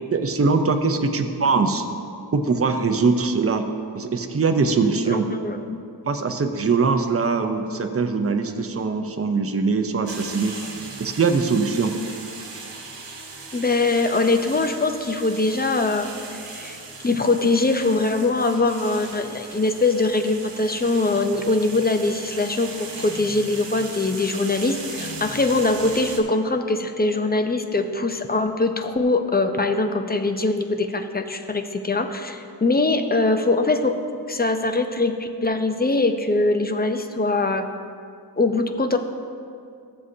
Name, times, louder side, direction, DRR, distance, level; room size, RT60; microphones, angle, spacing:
voice 1, 0.0-1.8 2.3-3.6 3.9-5.3 6.1-10.6 11.0-12.0, right 4 dB, 35° right, 6 dB, 0.6 m, -22 dB
voice 2, 5.1-5.8 13.5-16.1 16.5-16.8 17.0-34.0 34.3-37.7 38.4-39.0, left 3 dB, 25° left, 6 dB, 0.6 m, -22 dB
sound 1, 10.1-26.2, right 3 dB, 85° right, 1.2 m, -38 dB
14.0 x 7.5 x 2.7 m, 2.4 s
wide cardioid pair, 70°, 42 cm